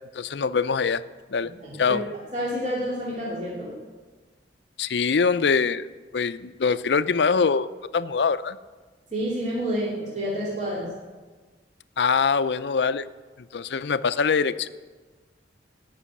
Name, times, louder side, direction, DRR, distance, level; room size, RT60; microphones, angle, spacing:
voice 1, 0.1-1.0 1.3-1.5 1.8-2.0 4.8-5.9 6.1-7.7 7.9-8.6 12.0-13.0 13.5-14.7, left 5 dB, 70° left, 14 dB, 0.5 m, -23 dB
voice 2, 1.6-2.0 2.3-3.7 9.1-10.9, equal, 45° right, -6 dB, 3.0 m, -29 dB
17.5 x 6.2 x 8.4 m, 1.4 s
head